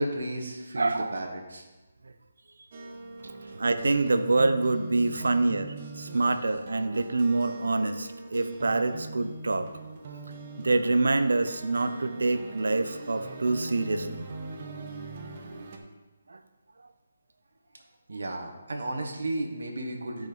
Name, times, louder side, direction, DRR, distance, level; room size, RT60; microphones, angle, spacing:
voice 1, 0.0-1.6 3.4-3.6 18.1-20.3, right 1 dB, 70° right, 1 dB, 1.5 m, -33 dB
voice 2, 0.8-1.2 3.6-9.7 10.6-14.3 16.3-16.4, right 3 dB, 85° right, 10 dB, 0.7 m, -26 dB
sound 1, 2.7-15.8, right 2 dB, 30° right, 0.8 m, -41 dB
12.0 x 5.2 x 4.0 m, 1.2 s
hypercardioid pair, 175°, 0 cm